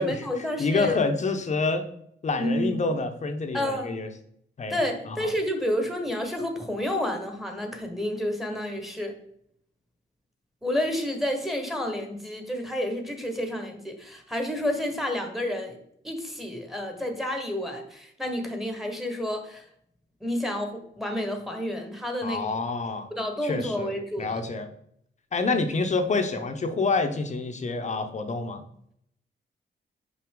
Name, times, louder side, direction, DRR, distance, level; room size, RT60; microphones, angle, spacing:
voice 1, 0.0-0.9 2.4-2.9 3.5-3.9 4.7-9.1 10.6-15.8 16.0-19.6 20.2-22.5 23.1-24.4, left 1 dB, ahead, 3 dB, 1.2 m, -30 dB
voice 2, 0.6-1.9 2.2-4.1 4.6-4.8 5.1-5.2 22.2-23.1 23.4-23.9 24.2-24.7 25.3-28.6, left 3 dB, 40° left, 7 dB, 0.7 m, -27 dB
5.9 x 5.5 x 3.7 m, 0.70 s
wide cardioid pair, 135°, 19 cm